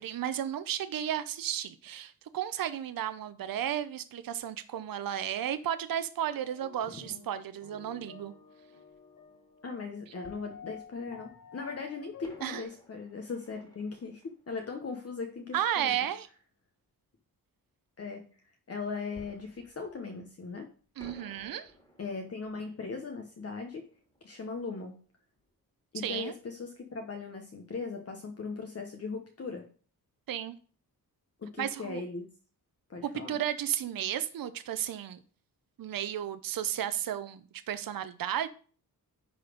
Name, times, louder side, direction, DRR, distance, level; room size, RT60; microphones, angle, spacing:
voice 1, 0.0-8.3 12.4-12.6 15.5-16.3 21.0-21.7 26.0-26.3 30.3-30.5 31.6-32.0 33.0-35.2 35.8-38.5, right 10 dB, 65° right, 0.6 m, -33 dB
sound 1, 6.3-9.8 10.2-12.6, left 6 dB, 60° left, 1.6 m, -51 dB
voice 2, 9.6-16.1 18.0-18.3 18.7-20.7 22.0-23.8 24.2-25.0 25.9-29.7 31.4-32.3 32.9-33.4, left 4 dB, 40° left, 1.1 m, -39 dB
Fireworks, 10.2-11.3 12.2-15.7 19.1-20.6 21.0-25.5 25.8-25.9 26.4-26.6, equal, 10° left, 2.2 m, -58 dB
10.0 x 4.2 x 5.1 m
wide cardioid pair, 140°, 37 cm